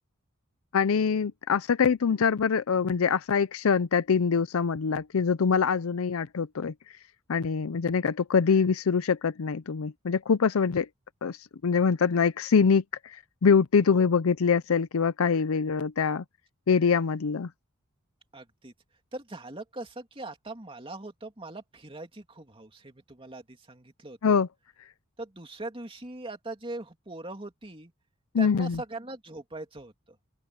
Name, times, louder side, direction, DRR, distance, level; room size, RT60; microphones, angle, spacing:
voice 1, 0.7-6.7 7.3-10.9 11.2-16.2 16.7-17.5 24.2-24.5 28.3-28.8, left 6 dB, 85° left, 0.5 m, -24 dB
voice 2, 18.3-18.7 19.1-24.4 25.2-27.9 28.4-30.3, right 2 dB, 25° right, 2.7 m, -41 dB
open air
head